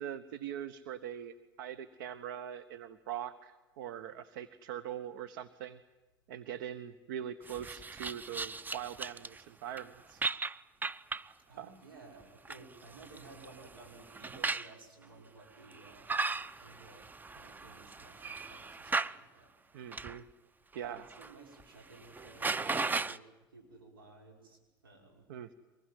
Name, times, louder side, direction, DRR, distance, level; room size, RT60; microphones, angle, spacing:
voice 1, 0.0-5.8 6.3-10.2 11.6-11.7 19.7-20.2 20.7-21.1 25.3-25.5, right 10 dB, 65° right, 12 dB, 1.1 m, -42 dB
sound 1, 7.5-9.4 9.8-9.9 10.2-11.3 12.2-14.7 15.7-19.2 19.9-20.2 20.7-21.3 21.6-21.7 22.0-23.2, right 3 dB, 15° right, 0.7 m, -37 dB
voice 2, 11.5-16.1 16.6-17.1 17.3-19.5 20.8-25.3, right 3 dB, 85° right, 0 dB, 5.7 m, -55 dB
24.5 x 21.5 x 9.3 m, 1.1 s
hypercardioid pair, 80°, 11 cm